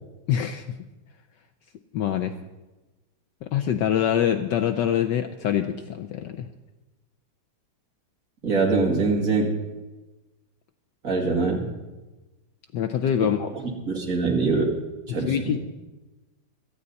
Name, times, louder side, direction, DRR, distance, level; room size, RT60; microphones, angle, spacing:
voice 1, 0.3-0.6 1.9-2.3 3.4-6.5 12.7-13.5 15.2-15.6, left 9 dB, 70° left, 6 dB, 1.1 m, -24 dB
voice 2, 8.4-9.5 11.0-11.7 13.5-13.6 13.9-14.8 15.1-15.3, right 3 dB, 40° right, -1 dB, 2.8 m, -23 dB
17.5 x 13.5 x 4.1 m, 1.1 s
omnidirectional pair, 2.4 m